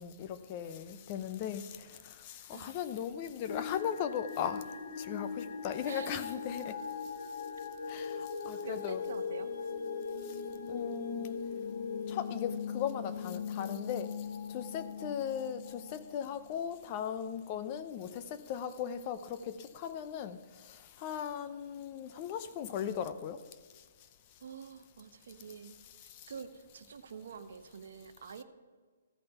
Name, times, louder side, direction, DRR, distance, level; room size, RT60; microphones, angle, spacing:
voice 1, 0.0-4.7 5.0-6.8 7.9-9.0 10.3-10.4 10.7-11.4 12.1-14.2 14.5-23.4 26.0-26.3, left 8 dB, 35° left, 0.7 m, -38 dB
sound 1, 3.5-16.5, left 6 dB, 65° left, 1.2 m, -40 dB
voice 2, 5.8-6.5 8.6-9.5 15.0-15.2 24.4-25.7 26.0-28.4, right 6 dB, 65° right, 0.9 m, -47 dB
14.5 x 5.2 x 5.8 m
hypercardioid pair, 145°, 0 cm